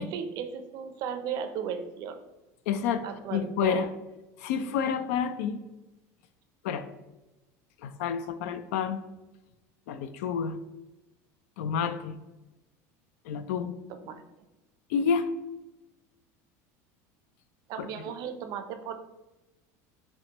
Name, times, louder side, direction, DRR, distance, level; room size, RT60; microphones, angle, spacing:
voice 1, 0.0-2.2 3.0-3.8 13.9-14.2 17.7-18.9, right 7 dB, 55° right, 8 dB, 0.5 m, -35 dB
voice 2, 2.7-3.0 3.3-3.9 4.4-5.6 6.6-6.9 7.8-9.0 9.9-10.6 11.6-12.2 13.2-13.8 14.9-15.3 17.8-17.9, left 7 dB, 85° left, 11 dB, 0.4 m, -29 dB
6.0 x 2.2 x 2.9 m, 1.0 s
supercardioid pair, 120°, 8 cm